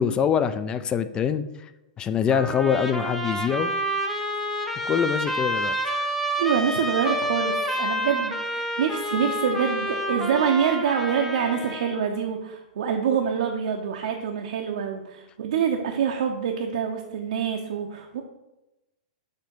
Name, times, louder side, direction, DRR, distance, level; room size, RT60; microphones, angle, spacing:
voice 1, 0.0-1.4 2.0-3.7 4.8-5.8, left 7 dB, 20° left, 12 dB, 0.3 m, -24 dB
Trumpet, 2.3-12.0, equal, 5° left, 0.8 m, -28 dB
voice 2, 6.4-18.2, right 7 dB, 70° right, 1 dB, 0.7 m, -26 dB
7.2 x 2.8 x 5.3 m, 0.96 s
hypercardioid pair, 135°, 4 cm